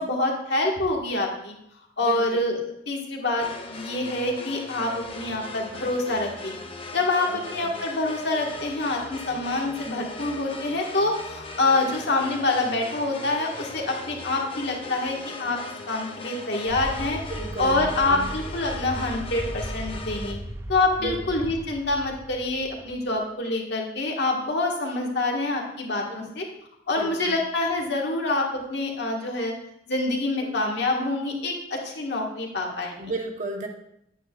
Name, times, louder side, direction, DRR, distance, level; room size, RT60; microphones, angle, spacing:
voice 1, 0.0-1.5 2.0-2.6 2.9-6.6 6.9-15.6 15.9-17.2 17.6-20.4 20.7-26.5 26.9-29.5 29.9-33.1, left 2 dB, 65° left, 0 dB, 1.6 m, -26 dB
sound 1, 3.4-20.3, left 3 dB, 30° left, 0.8 m, -39 dB
voice 2, 7.3-7.7 17.3-18.3 21.0-21.4 26.1-26.3 26.9-27.3 30.4-30.5 33.0-33.7, right 1 dB, 40° right, 2 dB, 1.2 m, -34 dB
sound 2, 16.7-23.2, right 1 dB, 15° right, 0.5 m, -37 dB
9.4 x 9.1 x 2.4 m, 0.78 s
head